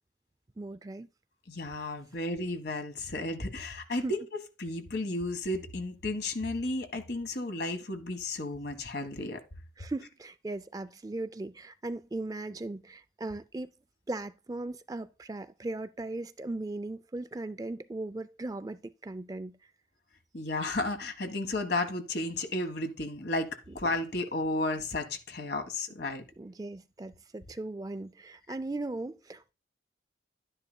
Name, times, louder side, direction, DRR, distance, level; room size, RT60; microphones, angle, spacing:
voice 1, 0.6-1.1 4.0-4.1 9.8-13.7 14.1-19.6 23.7-23.8 26.4-29.5, right 2 dB, 20° right, 0.3 m, -38 dB
voice 2, 1.5-4.2 4.6-9.4 20.3-23.5 23.7-26.2, left 2 dB, 60° left, 1.5 m, -33 dB
11.5 x 9.7 x 2.2 m
head